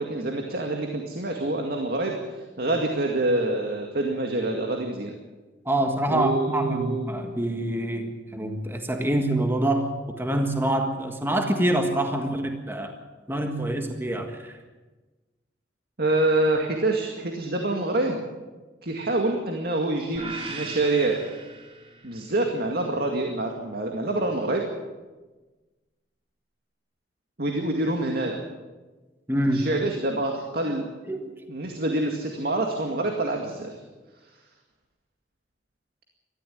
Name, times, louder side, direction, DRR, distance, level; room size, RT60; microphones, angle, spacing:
voice 1, 0.0-5.1 6.1-7.1 16.0-18.2 18.8-21.2 22.0-24.6 27.4-28.4 29.5-30.9 31.5-33.7, right 2 dB, 60° right, 2 dB, 2.1 m, -26 dB
voice 2, 5.6-12.9 13.3-14.5 29.3-29.8 31.1-31.3, right 1 dB, 15° right, 4 dB, 1.6 m, -26 dB
sound 1, 20.1-22.4, right 4 dB, 30° right, 2.6 m, -39 dB
19.5 x 14.0 x 9.4 m, 1.2 s
head